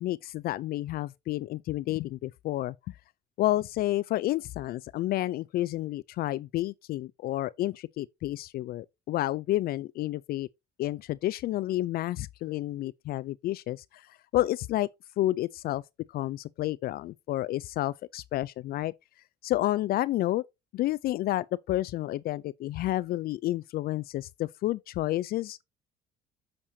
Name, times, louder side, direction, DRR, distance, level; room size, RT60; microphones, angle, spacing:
voice 1, 0.0-2.7 3.4-10.5 10.8-14.9 15.2-15.8 16.1-18.9 19.4-20.4 20.7-25.6, left 15 dB, 65° left, 0.4 m, -30 dB
8.6 x 6.6 x 2.7 m
cardioid pair, 110°, 17 cm